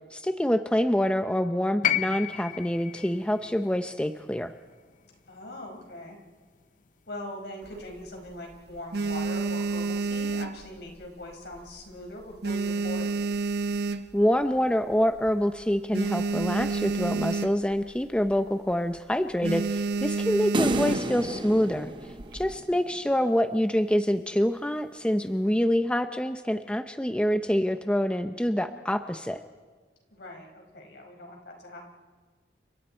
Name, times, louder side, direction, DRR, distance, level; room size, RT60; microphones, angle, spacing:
voice 1, 0.1-4.5 14.1-21.9 22.3-29.4, equal, 5° left, 8 dB, 0.6 m, -26 dB
sound 1, 1.8-6.0 7.2-7.3, left 10 dB, 50° left, 0.9 m, -33 dB
voice 2, 5.3-6.2 7.1-13.1 30.1-31.8, left 1 dB, 65° left, 1 dB, 5.5 m, -41 dB
sound 2, 7.6-8.3 8.7-11.2 11.5-11.9 12.2-14.4 14.9-15.0 15.2-15.3 15.6-17.8 18.1-18.4 18.7-19.0 19.4-21.3 22.0-22.6, right 4 dB, 65° right, 1.0 m, -29 dB
sound 3, 20.5-22.9, right 1 dB, 30° right, 0.9 m, -31 dB
30.0 x 27.0 x 4.5 m, 1.4 s
head